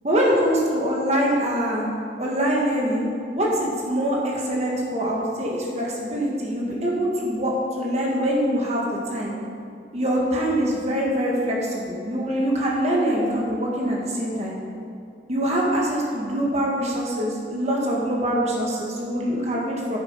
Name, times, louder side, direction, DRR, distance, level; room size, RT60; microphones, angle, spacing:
voice 1, 0.0-1.9 2.2-3.1 3.3-9.3 9.9-14.6 15.3-20.0, equal, 35° right, -3 dB, 1.8 m, -24 dB
9.1 x 7.3 x 5.7 m, 2.6 s
head